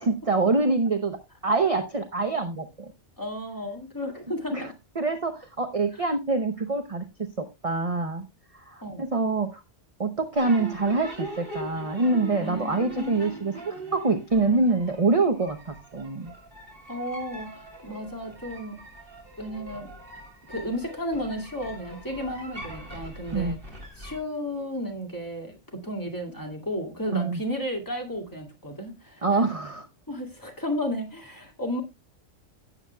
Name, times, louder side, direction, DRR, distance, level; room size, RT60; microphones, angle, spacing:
voice 1, 0.0-2.9 4.5-8.3 8.7-9.6 10.0-16.3 23.3-23.6 27.1-27.4 29.2-29.9, right 3 dB, 35° right, 0.8 m, -25 dB
voice 2, 3.2-4.7 5.9-6.0 8.8-9.1 12.4-12.8 16.9-18.8 19.4-19.9 20.5-23.6 24.0-29.4 30.1-31.8, equal, 15° left, 2.2 m, -33 dB
sound 1, 10.3-24.2, right 1 dB, 50° right, 3.4 m, -41 dB
16.0 x 7.8 x 2.2 m
omnidirectional pair, 1.3 m